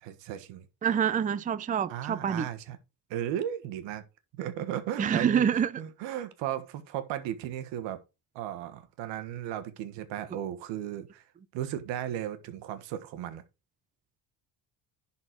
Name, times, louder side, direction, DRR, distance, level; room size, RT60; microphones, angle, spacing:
voice 1, 0.0-0.7 1.9-2.8 3.1-4.0 4.4-5.5 5.8-8.0 8.3-11.2 11.5-13.4, right 11 dB, 90° right, 1.4 m, -35 dB
voice 2, 0.8-2.5 5.0-5.7, right 8 dB, 20° right, 0.5 m, -26 dB
11.0 x 4.4 x 4.6 m
cardioid pair, 115°, 43 cm